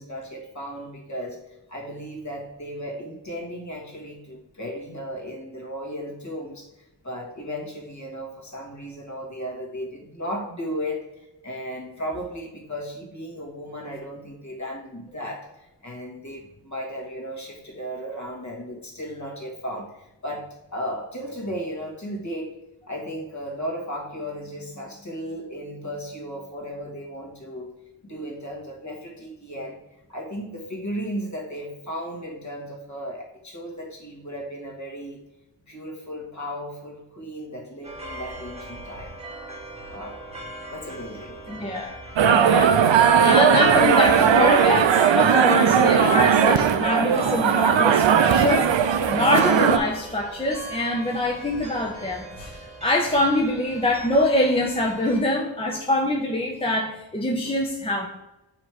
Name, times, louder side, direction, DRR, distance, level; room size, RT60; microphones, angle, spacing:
voice 1, 0.0-1.4 1.7-6.7 7.0-22.5 22.9-27.7 28.0-29.8 30.1-35.2 35.7-39.1 39.9-40.2 40.7-41.4, equal, 40° left, -1 dB, 1.6 m, -35 dB
sound 1, 37.8-55.2, right 1 dB, 15° right, 1.4 m, -40 dB
voice 2, 41.5-58.1, left 1 dB, 15° left, -1 dB, 0.6 m, -24 dB
sound 2, 42.2-49.8, right 7 dB, 75° right, 0.6 m, -18 dB
7.4 x 3.1 x 4.9 m, 0.96 s
wide cardioid pair, 100°, 45 cm